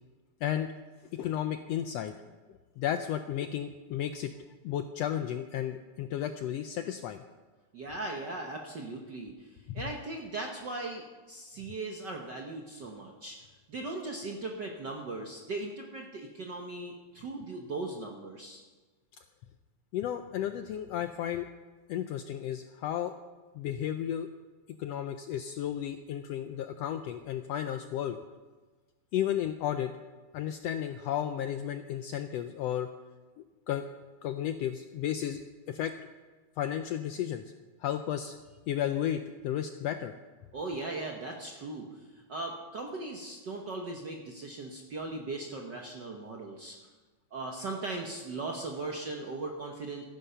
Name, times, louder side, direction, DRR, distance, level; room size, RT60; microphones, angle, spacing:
voice 1, 1.1-2.1 2.8-7.2 19.9-21.5 21.9-23.1 23.5-24.3 24.8-28.2 29.1-29.9 30.3-32.9 33.7-33.8 34.2-35.4 35.7-35.9 36.6-37.4 37.8-38.4 38.7-40.1, left 10 dB, 85° left, 8 dB, 1.4 m, -33 dB
voice 2, 7.7-18.6 40.5-46.9 47.3-50.0, right 2 dB, 60° right, 1 dB, 1.1 m, -38 dB
14.0 x 10.5 x 5.7 m, 1.3 s
omnidirectional pair, 3.4 m